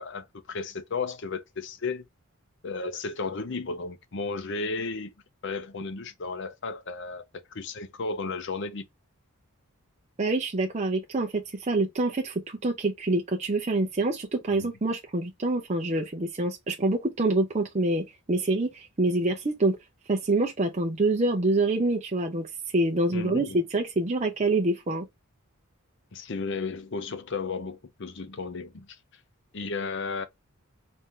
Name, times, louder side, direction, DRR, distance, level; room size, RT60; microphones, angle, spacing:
voice 1, 0.0-2.0 2.6-5.1 5.4-7.2 7.5-8.9 14.5-14.7 23.1-23.6 26.1-28.9 29.5-30.3, left 4 dB, 55° left, 0.6 m, -34 dB
voice 2, 10.2-19.8 20.1-22.5 22.7-25.1, right 2 dB, 30° right, 0.5 m, -26 dB
4.3 x 2.6 x 3.6 m
head